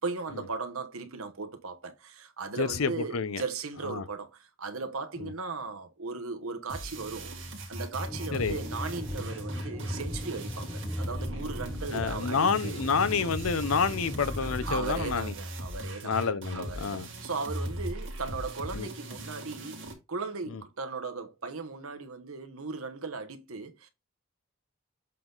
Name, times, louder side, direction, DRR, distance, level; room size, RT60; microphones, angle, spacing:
voice 1, 0.0-7.4 7.7-12.8 14.6-16.1 16.5-19.8 20.1-23.9, right 4 dB, 85° right, 1.1 m, -37 dB
voice 2, 2.6-3.4 3.9-4.0 5.2-5.3 8.3-8.6 11.9-15.3 16.0-17.1 18.7-18.9 20.5-20.6, left 5 dB, 80° left, 0.7 m, -29 dB
sound 1, 6.7-19.9, equal, 60° right, 2.1 m, -38 dB
sound 2, 8.1-14.8, left 1 dB, 10° left, 0.6 m, -38 dB
7.6 x 3.9 x 3.9 m
head